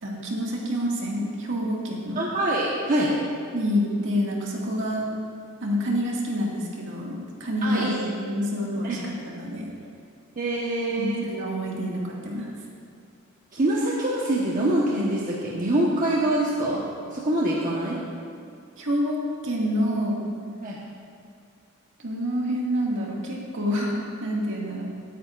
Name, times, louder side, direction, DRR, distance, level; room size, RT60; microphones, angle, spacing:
voice 1, 0.0-2.3 3.5-5.1 5.6-9.7 11.0-12.5 18.8-19.2 19.4-20.2 22.0-24.8, equal, 60° right, -3 dB, 1.9 m, -27 dB
voice 2, 2.1-3.1 7.6-8.1 8.8-9.0 10.4-11.3 13.5-16.9 17.1-18.0 20.6-20.8, right 1 dB, 40° right, -5 dB, 1.1 m, -24 dB
17.5 x 9.3 x 2.5 m, 2.4 s
head